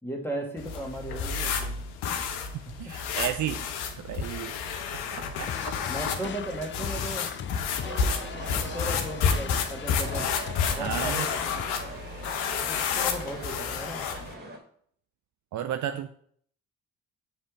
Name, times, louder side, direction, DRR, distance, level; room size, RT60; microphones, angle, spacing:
voice 1, 0.0-1.8 4.9-5.4 5.9-7.3 8.5-10.3 10.7-11.4 12.7-14.1, right 1 dB, 5° left, 1 dB, 2.0 m, -37 dB
sound 1, 0.6-14.3, left 6 dB, 75° left, 0.8 m, -30 dB
voice 2, 2.8-3.6 4.0-4.5 5.1-5.7 10.7-11.3 15.5-16.1, right 10 dB, 50° right, 9 dB, 0.5 m, -33 dB
sound 2, 5.5-11.6, left 8 dB, 30° left, 0.4 m, -38 dB
sound 3, 7.8-14.6, right 1 dB, 25° right, 2.2 m, -41 dB
7.3 x 3.3 x 5.0 m, 0.62 s
hypercardioid pair, 45°, 39 cm